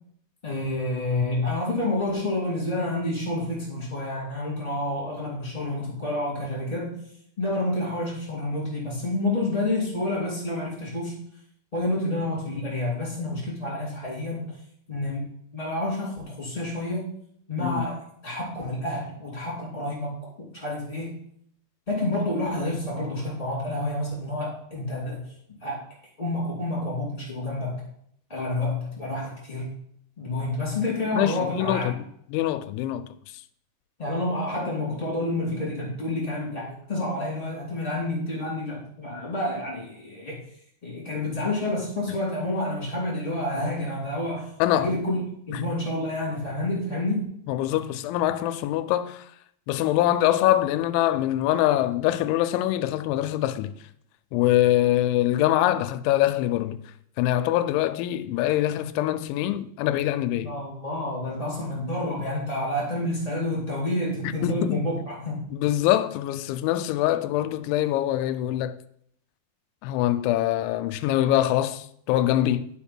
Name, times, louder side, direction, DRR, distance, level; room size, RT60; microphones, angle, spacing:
voice 1, 0.4-7.0 7.4-11.2 11.7-14.6 14.9-15.3 15.5-17.1 17.5-21.2 21.9-25.3 25.6-25.8 26.2-27.8 28.3-29.8 30.2-31.9 34.0-40.4 40.8-45.2 45.5-47.3 60.4-65.5, left 1 dB, 15° left, 2.3 m, -29 dB
voice 2, 31.1-32.0 32.3-33.0 44.6-44.9 47.5-49.2 49.7-53.7 54.3-56.8 57.2-60.5 64.2-64.8 65.5-68.8 69.8-72.7, left 13 dB, 85° left, 2.9 m, -24 dB
10.0 x 5.5 x 4.4 m
omnidirectional pair, 5.3 m